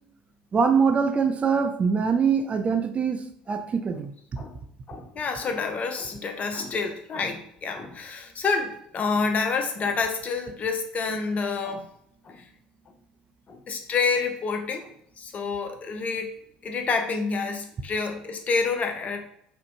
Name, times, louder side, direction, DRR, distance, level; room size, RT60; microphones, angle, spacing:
voice 1, 0.5-4.1, right 6 dB, 30° right, 7 dB, 0.4 m, -23 dB
voice 2, 4.9-11.8 12.3-12.4 13.5-14.9 15.2-16.3 16.6-19.2, left 4 dB, 35° left, 4 dB, 0.6 m, -28 dB
4.2 x 2.1 x 2.9 m, 0.71 s
hypercardioid pair, 70°, 4 cm